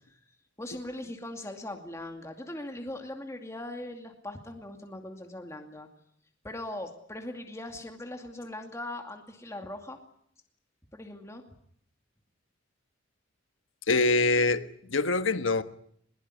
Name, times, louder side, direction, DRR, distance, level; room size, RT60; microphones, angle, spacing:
voice 1, 0.6-5.9 6.4-10.0 10.9-11.4, left 1 dB, 15° left, 2.4 m, -40 dB
voice 2, 13.9-15.6, left 3 dB, 80° left, 1.4 m, -24 dB
21.5 x 21.5 x 9.8 m
head